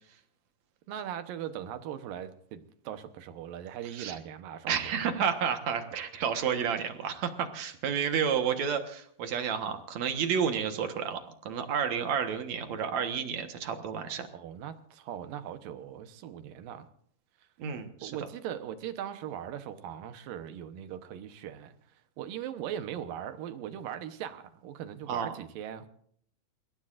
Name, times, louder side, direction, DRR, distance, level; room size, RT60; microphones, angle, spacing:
voice 1, 0.9-4.8 14.3-16.9 18.0-21.8 22.2-25.9, right 10 dB, 75° right, 9 dB, 2.8 m, -39 dB
voice 2, 4.7-14.3 17.6-18.1 25.1-25.3, right 7 dB, 60° right, 6 dB, 2.4 m, -31 dB
29.0 x 16.5 x 2.6 m, 0.64 s
omnidirectional pair, 4.1 m